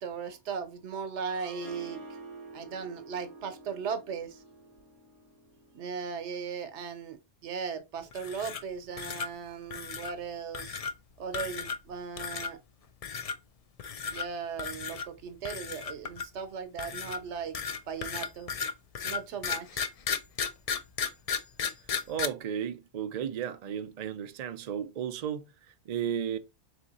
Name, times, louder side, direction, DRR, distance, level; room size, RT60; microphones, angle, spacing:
voice 1, 0.0-2.0 2.5-4.4 5.7-10.8 11.2-12.6 14.1-17.6 17.8-18.5 19.0-19.8, right 6 dB, 90° right, 1.1 m, -37 dB
Harp, 1.3-6.3, right 3 dB, 25° left, 2.3 m, -48 dB
sound 1, 8.1-8.7 9.0-9.3 9.7-10.1 10.5-10.9 11.3-11.9 12.2-12.5 13.0-13.3 13.8-14.3 14.6-15.1 15.4-16.4 16.8-22.3, left 6 dB, 60° left, 0.3 m, -34 dB
voice 2, 22.1-26.4, right 9 dB, 50° right, 0.5 m, -34 dB
3.6 x 3.3 x 4.1 m
omnidirectional pair, 1.2 m